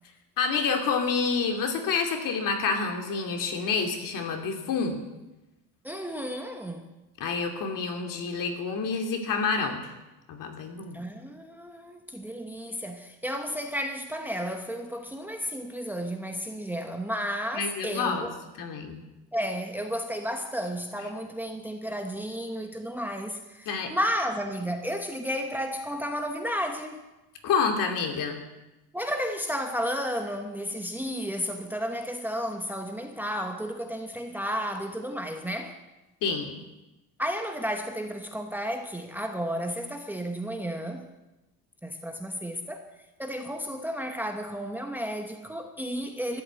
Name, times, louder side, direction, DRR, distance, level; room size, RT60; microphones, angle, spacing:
voice 1, 0.4-5.0 7.2-9.8 10.3-11.0 17.5-18.3 18.6-19.0 23.7-23.9 27.4-28.4 36.2-36.6, left 5 dB, 55° left, 4 dB, 2.6 m, -28 dB
voice 2, 5.8-6.9 10.9-18.3 19.3-27.0 28.9-35.8 37.2-41.1 41.8-42.9 43.2-46.4, equal, 5° right, 4 dB, 0.9 m, -32 dB
13.0 x 10.5 x 8.1 m, 1.0 s
cardioid pair, 160°, 38 cm